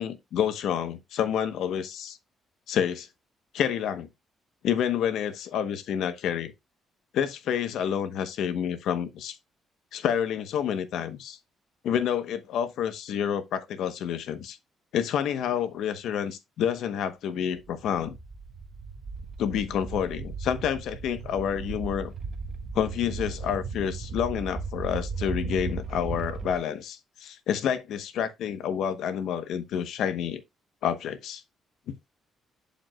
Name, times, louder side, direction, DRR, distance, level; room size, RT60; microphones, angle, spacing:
voice 1, 0.0-2.2 2.7-3.1 3.5-4.1 4.6-6.5 7.1-9.4 9.9-11.4 11.8-14.6 14.9-18.2 19.4-22.1 22.7-30.4 30.8-31.4, left 9 dB, 75° left, 0.9 m, -29 dB
sound 1, 17.5-26.6, right 4 dB, 45° right, 1.1 m, -36 dB
11.5 x 5.2 x 2.3 m
cardioid pair, 125°, 0 cm